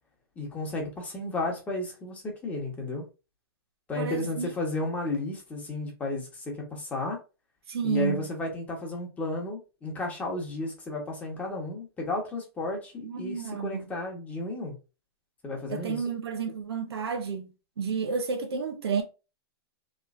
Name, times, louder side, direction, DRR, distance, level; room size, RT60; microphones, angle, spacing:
voice 1, 0.4-3.0 3.9-7.2 7.8-14.8 15.4-16.0, left 2 dB, 10° left, 0.9 m, -33 dB
voice 2, 4.0-4.5 7.7-8.3 13.0-13.9 15.7-19.0, right 5 dB, 90° right, 0.9 m, -31 dB
3.1 x 3.1 x 2.4 m
hypercardioid pair, 150°, 13 cm